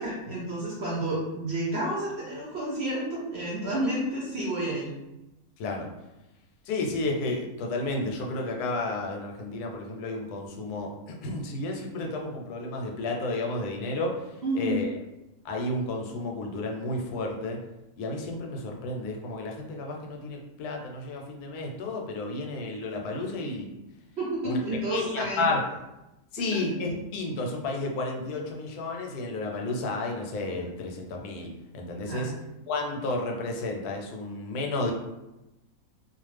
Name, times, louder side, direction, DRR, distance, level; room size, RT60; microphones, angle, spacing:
voice 1, 0.0-4.9 14.4-14.9 24.2-25.4 32.0-32.3, right 1 dB, 60° right, -5 dB, 0.7 m, -30 dB
voice 2, 6.7-14.1 14.5-14.9 15.4-17.6 18.0-23.7 24.4-24.6 24.9-25.6 26.3-32.3 32.7-34.9, left 2 dB, 80° left, 1 dB, 1.1 m, -32 dB
2.4 x 2.3 x 3.2 m, 0.96 s
omnidirectional pair, 1.6 m